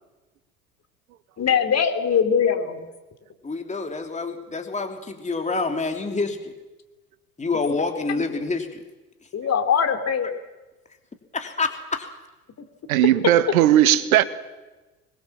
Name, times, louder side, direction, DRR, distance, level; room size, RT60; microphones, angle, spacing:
voice 1, 1.4-2.8 9.3-10.3, left 7 dB, 35° left, 7 dB, 3.6 m, -21 dB
voice 2, 3.4-6.5 7.4-8.8 11.3-12.1, left 3 dB, 15° left, 4 dB, 3.3 m, -27 dB
voice 3, 12.9-14.2, right 13 dB, 70° right, 15 dB, 1.6 m, -17 dB
26.0 x 21.5 x 7.4 m, 1.1 s
figure-of-eight pair, 70°, 44 cm